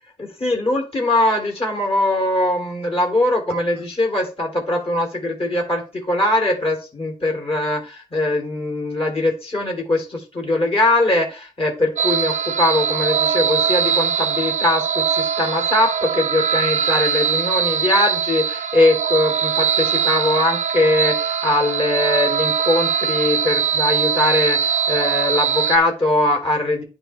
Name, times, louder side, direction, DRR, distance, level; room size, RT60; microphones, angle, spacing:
voice 1, 0.2-26.8, left 2 dB, 45° left, 0 dB, 3.3 m, -21 dB
sound 1, 12.0-25.8, right 7 dB, 70° right, 0.5 m, -21 dB
9.9 x 3.4 x 3.5 m, 0.33 s
cardioid pair, 45°, 13 cm